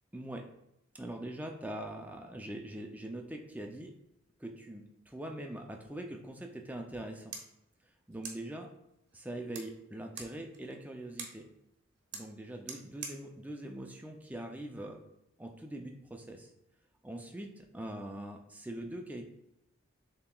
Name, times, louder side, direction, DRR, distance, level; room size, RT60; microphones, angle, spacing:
voice 1, 0.1-0.4 0.9-3.9 4.4-7.3 8.1-8.7 9.1-11.5 12.1-15.0 15.4-16.5 17.0-19.3, right 1 dB, 10° right, 2 dB, 0.4 m, -42 dB
sound 1, 7.3-14.9, right 5 dB, 55° right, 0.7 m, -50 dB
6.9 x 2.8 x 2.3 m, 0.84 s
head